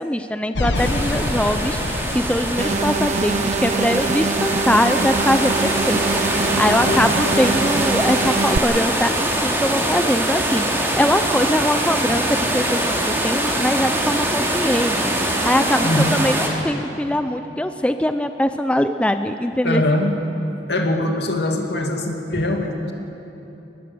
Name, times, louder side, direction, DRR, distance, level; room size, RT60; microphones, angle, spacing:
voice 1, 0.0-19.8, left 1 dB, 5° left, 8 dB, 0.5 m, -22 dB
sound 1, 0.6-4.8, left 2 dB, 85° left, 1.1 m, -28 dB
sound 2, 0.7-16.5, right 1 dB, 15° right, 2.7 m, -23 dB
sound 3, 2.6-8.6, right 4 dB, 40° right, 0.5 m, -24 dB
voice 2, 6.7-7.2 7.4-7.5 15.8-16.2 19.6-20.1 20.7-22.9, left 1 dB, 70° left, 2 dB, 2.5 m, -22 dB
23.0 x 20.0 x 6.9 m, 2.9 s
head